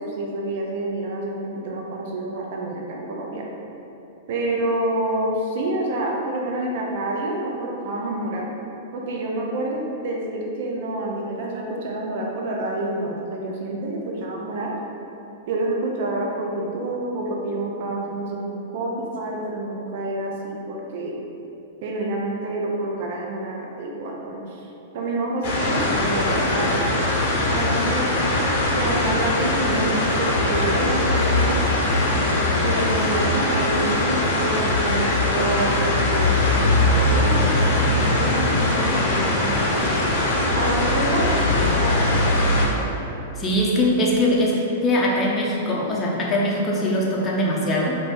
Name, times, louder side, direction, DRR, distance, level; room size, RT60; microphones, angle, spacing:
voice 1, 0.0-3.5 4.3-8.5 8.9-14.7 15.5-21.2 21.8-24.7 24.9-26.7 27.5-28.1 28.8-31.6 32.6-40.1 40.5-42.1, right 2 dB, 60° right, -1 dB, 0.5 m, -28 dB
sound 1, 25.4-42.7, left 2 dB, 55° left, 0.8 m, -21 dB
voice 2, 43.4-44.5 44.8-48.0, left 1 dB, 20° left, -4 dB, 0.6 m, -21 dB
2.9 x 2.5 x 3.6 m, 3.0 s
hypercardioid pair, 130°, 0 cm